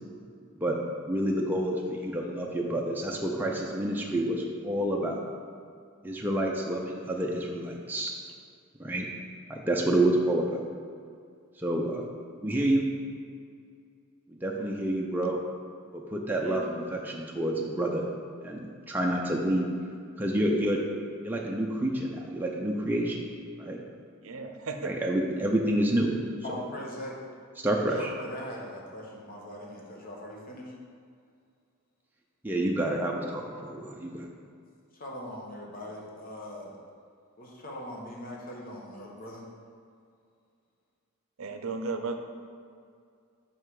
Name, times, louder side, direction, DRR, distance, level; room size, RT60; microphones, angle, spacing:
voice 1, 1.1-5.2 6.0-8.1 8.8-9.1 9.5-10.6 11.6-12.0 12.4-12.9 14.4-15.4 15.9-18.0 18.4-19.7 20.2-20.8 21.2-23.2 23.6-23.8 24.8-26.1 27.6-28.1 32.4-34.3, right 1 dB, 10° right, -1 dB, 0.5 m, -28 dB
voice 2, 16.4-16.7 24.2-24.9 41.4-42.2, right 4 dB, 70° right, 6 dB, 0.6 m, -35 dB
voice 3, 26.4-27.2 27.9-30.7 34.9-36.8 37.4-39.4, left 1 dB, 45° left, -2 dB, 1.2 m, -41 dB
5.6 x 5.5 x 4.8 m, 2.3 s
head